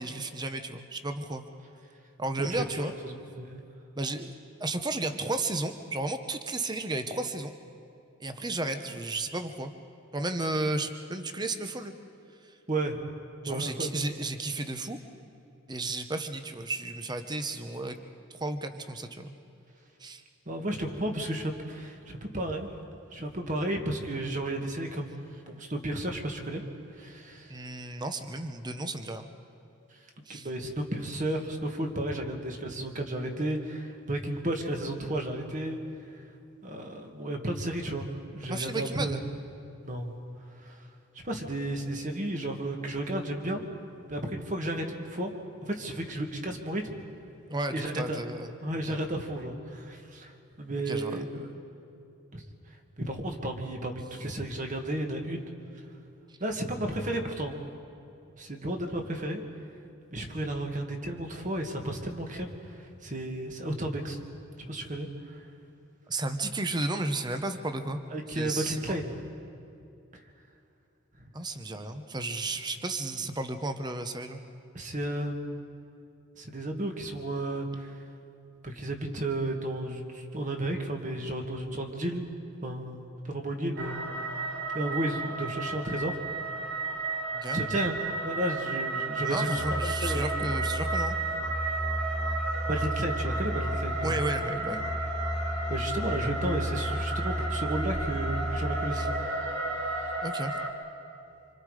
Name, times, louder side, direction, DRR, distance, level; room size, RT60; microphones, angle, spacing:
voice 1, 0.0-1.4 2.2-2.9 3.9-7.5 8.2-9.7 10.1-11.9 13.4-15.0 15.7-18.0 18.3-19.3 20.0-20.2 27.5-29.3 30.3-30.5 38.5-39.2 47.5-48.6 48.8-49.0 50.9-51.3 66.1-68.0 68.3-69.0 71.3-74.4 87.3-87.6 89.2-91.2 94.0-94.8 98.9-99.1 100.2-100.6, right 2 dB, 20° right, 8 dB, 0.9 m, -33 dB
voice 2, 2.4-3.6 12.7-13.0 13.5-13.9 20.5-22.7 23.1-25.2 25.5-26.6 26.9-27.6 30.3-35.8 36.6-38.1 38.3-39.2 39.8-40.1 40.5-40.9 41.2-43.6 44.1-45.3 45.6-47.0 47.7-48.2 48.6-51.5 52.3-52.4 53.0-55.5 56.4-57.6 58.4-59.4 60.1-64.2 64.6-65.5 68.1-69.1 74.7-75.6 76.4-78.0 78.6-82.2 82.6-84.0 84.7-86.2 87.5-87.9 88.2-90.5 92.7-94.2 95.7-100.2, right 1 dB, 35° right, 3 dB, 1.9 m, -33 dB
sound 1, 83.8-100.7, right 3 dB, 55° right, 2.4 m, -33 dB
Musical instrument, 89.5-99.5, equal, 5° left, 2.1 m, -34 dB
26.5 x 25.5 x 4.9 m, 2.7 s
head